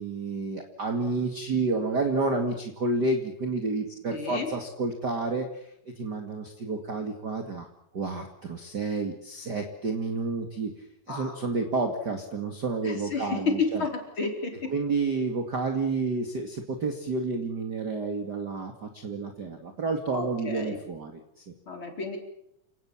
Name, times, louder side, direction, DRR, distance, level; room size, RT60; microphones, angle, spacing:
voice 1, 0.0-7.7 7.9-10.7 11.1-13.8 14.7-21.1 21.4-21.5, right 3 dB, 35° right, 5 dB, 2.5 m, -30 dB
voice 2, 4.1-4.5 11.1-11.4 12.8-14.7 20.1-20.8 21.7-22.2, left 4 dB, 35° left, 3 dB, 5.2 m, -31 dB
29.0 x 18.5 x 7.4 m, 0.78 s
omnidirectional pair, 3.8 m